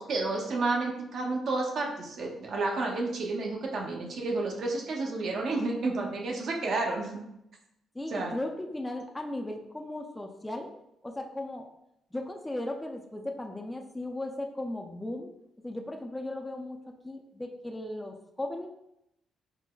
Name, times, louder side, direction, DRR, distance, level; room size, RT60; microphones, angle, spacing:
voice 1, 0.0-7.2 8.1-8.3, right 3 dB, 60° right, 0 dB, 0.6 m, -31 dB
voice 2, 7.9-10.7 11.0-11.7 12.1-15.3 15.6-16.8 17.0-18.7, left 1 dB, 10° left, 2 dB, 0.3 m, -36 dB
4.5 x 2.1 x 2.2 m, 0.82 s
cardioid pair, 90°, 0 cm